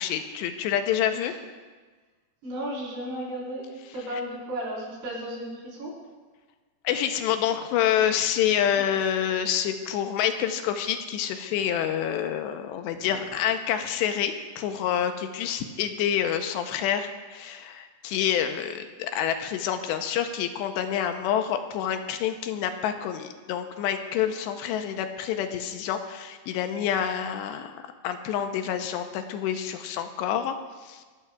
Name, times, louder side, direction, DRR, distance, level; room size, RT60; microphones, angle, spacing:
voice 1, 0.0-1.3 6.8-30.6 30.8-31.0, left 9 dB, 85° left, 7 dB, 3.0 m, -27 dB
voice 2, 2.4-6.0 13.0-13.1, equal, 80° right, -5 dB, 6.7 m, -34 dB
25.0 x 14.0 x 2.4 m, 1.4 s
omnidirectional pair, 5.0 m